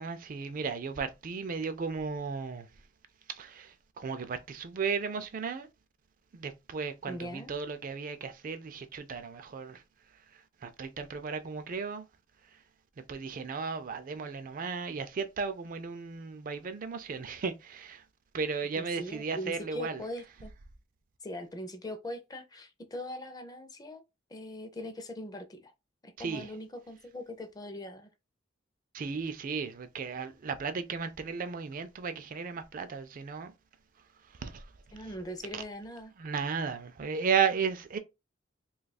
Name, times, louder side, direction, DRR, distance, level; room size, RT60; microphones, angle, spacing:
voice 1, 0.0-2.7 3.3-5.7 6.3-9.8 10.6-12.0 13.1-18.0 18.3-20.0 26.2-26.5 28.9-33.5 34.4-34.6 35.5-35.6 36.2-38.0, right 5 dB, 45° right, 0.4 m, -34 dB
voice 2, 7.1-7.6 18.8-20.5 21.2-24.0 24.3-25.7 26.0-28.1 34.9-36.1, equal, 20° left, 0.5 m, -41 dB
2.7 x 2.3 x 4.0 m
head